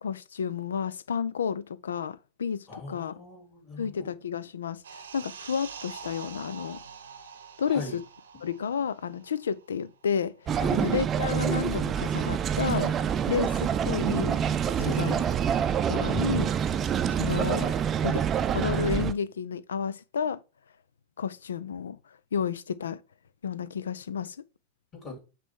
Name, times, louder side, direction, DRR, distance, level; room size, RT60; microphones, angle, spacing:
voice 1, 0.0-3.1 3.8-6.8 7.6-8.0 8.4-12.9 13.3-14.4 14.9-15.2 15.9-16.5 17.1-17.7 18.0-18.2 18.5-20.4 21.2-22.0 22.3-23.0 23.4-24.4, left 7 dB, 65° left, 0.5 m, -31 dB
voice 2, 2.7-4.1 7.6-8.0 10.6-10.8 14.8-15.0 24.9-25.2, left 2 dB, 30° left, 2.8 m, -39 dB
sound 1, 4.8-9.9 10.2-10.4, right 7 dB, 65° right, 0.9 m, -45 dB
sound 2, 10.5-19.1, right 8 dB, 25° right, 0.6 m, -26 dB
9.0 x 3.3 x 4.4 m
figure-of-eight pair, 90°, 0 cm